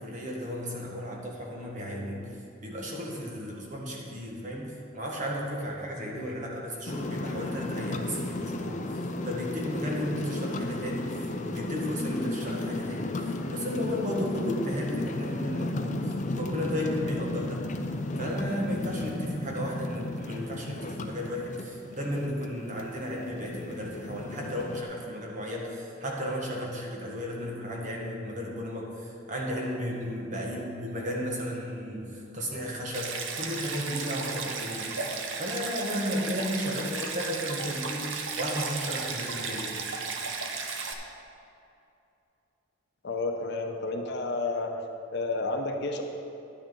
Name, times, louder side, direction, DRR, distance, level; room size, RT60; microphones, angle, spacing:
voice 1, 0.0-9.0 9.2-17.7 18.2-39.8, equal, 40° right, -1 dB, 1.6 m, -34 dB
sound 1, 6.9-24.8, left 2 dB, 40° left, 0.6 m, -34 dB
Stream, 32.9-40.9, right 4 dB, 70° right, 0.8 m, -34 dB
voice 2, 43.0-44.7 45.1-46.0, left 3 dB, 60° left, 3 dB, 0.9 m, -30 dB
11.0 x 8.9 x 3.9 m, 2.7 s
head